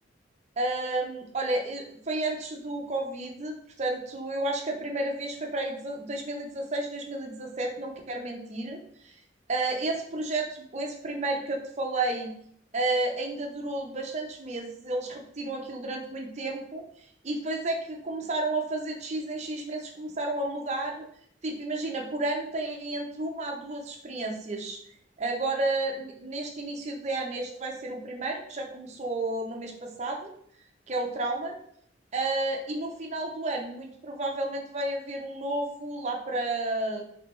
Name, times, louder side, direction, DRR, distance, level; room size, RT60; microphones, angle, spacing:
voice 1, 0.6-9.1 9.5-12.3 12.7-16.8 17.2-21.0 21.4-24.8 25.2-30.3 30.9-31.5 32.1-37.0, right 2 dB, 35° right, 1 dB, 0.6 m, -31 dB
3.3 x 3.3 x 3.1 m, 0.67 s
head